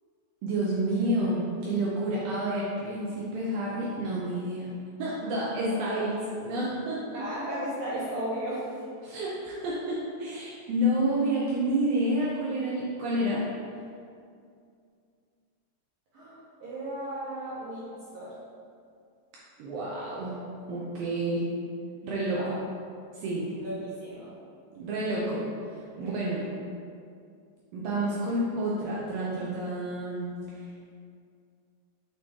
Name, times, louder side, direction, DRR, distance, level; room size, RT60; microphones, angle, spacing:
voice 1, 0.4-4.7 5.0-6.2 6.4-7.2 9.0-13.4 19.6-20.4 20.7-21.5 22.0-22.4 23.1-23.5 24.8-25.5 26.0-26.5 27.7-30.6, right 1 dB, 85° right, -6 dB, 2.0 m, -29 dB
voice 2, 7.1-8.7 16.1-18.3 22.3-22.6 23.4-24.3 26.0-26.3, right 1 dB, 70° right, -10 dB, 2.1 m, -36 dB
8.7 x 3.1 x 3.5 m, 2.3 s
omnidirectional pair, 5.1 m